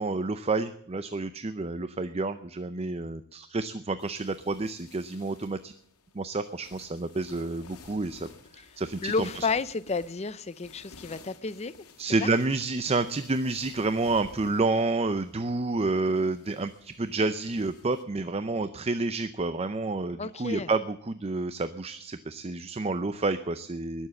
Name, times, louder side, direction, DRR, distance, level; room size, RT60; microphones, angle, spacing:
voice 1, 0.0-5.7 6.1-8.3 8.5-9.5 12.0-24.1, right 3 dB, 25° right, 0.5 m, -29 dB
sound 1, 4.0-18.0, left 3 dB, 90° left, 2.1 m, -53 dB
voice 2, 9.0-11.9 12.2-12.3 20.2-20.7, left 4 dB, 30° left, 0.6 m, -31 dB
20.5 x 7.3 x 7.6 m
head